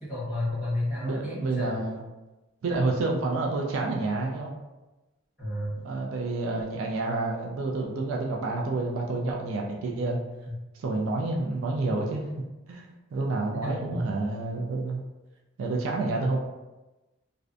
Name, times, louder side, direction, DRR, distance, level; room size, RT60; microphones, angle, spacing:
voice 1, 0.0-1.9 5.4-5.8 13.6-14.0, left 1 dB, 5° right, -11 dB, 1.1 m, -31 dB
voice 2, 1.0-2.0 2.6-4.5 5.8-10.2 10.8-12.2 12.7-15.0 15.6-16.4, right 2 dB, 75° right, -1 dB, 0.3 m, -29 dB
2.5 x 2.1 x 2.5 m, 1.1 s
head